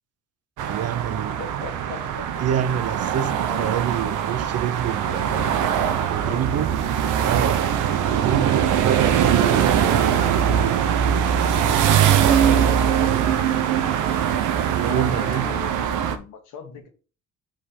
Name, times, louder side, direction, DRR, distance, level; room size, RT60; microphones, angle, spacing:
sound 1, 0.6-16.1, right 9 dB, 85° right, 0.8 m, -21 dB
voice 1, 0.7-1.4 2.4-5.6 6.1-6.8 7.2-7.7 8.1-10.2 12.2-13.0 14.7-15.5, right 9 dB, 55° right, 0.6 m, -27 dB
voice 2, 1.4-2.3 3.4-3.8 5.0-5.7 6.2-6.6 12.4-13.2 14.7-16.9, left 5 dB, 85° left, 1.6 m, -38 dB
5.3 x 5.0 x 4.2 m
cardioid pair, 90°, 30 cm